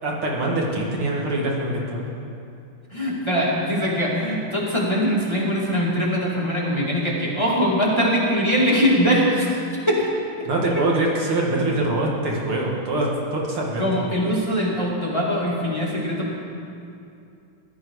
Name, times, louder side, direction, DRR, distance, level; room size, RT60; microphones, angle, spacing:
voice 1, 0.0-2.0 10.5-13.8, right 2 dB, 75° right, -3 dB, 2.8 m, -24 dB
voice 2, 2.9-10.1 10.4-10.5 10.7-10.9 13.8-16.4, equal, 10° left, -6 dB, 2.3 m, -22 dB
15.5 x 12.5 x 4.8 m, 2.5 s
omnidirectional pair, 2.4 m